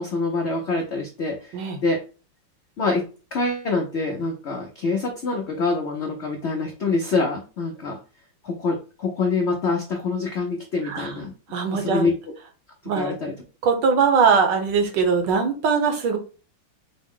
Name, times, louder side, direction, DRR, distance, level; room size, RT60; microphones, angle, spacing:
voice 1, 0.0-2.0 2.8-8.0 8.4-11.3 11.7-12.1 12.9-13.3, left 3 dB, 85° left, 1 dB, 0.5 m, -25 dB
voice 2, 10.8-11.1 11.5-12.1 12.8-13.1 13.6-16.2, right 5 dB, 70° right, 4 dB, 1.6 m, -21 dB
5.1 x 2.1 x 3.6 m, 0.34 s
omnidirectional pair, 2.1 m